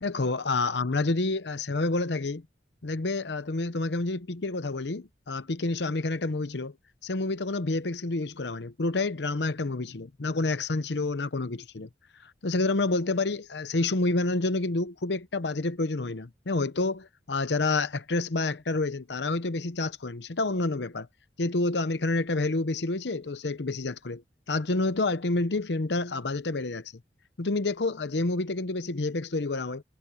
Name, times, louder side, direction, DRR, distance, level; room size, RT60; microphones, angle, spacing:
voice 1, 0.0-2.4 2.8-6.7 7.0-11.9 12.2-21.1 21.4-24.2 24.5-26.9 27.4-29.8, left 3 dB, 70° left, 0.8 m, -28 dB
head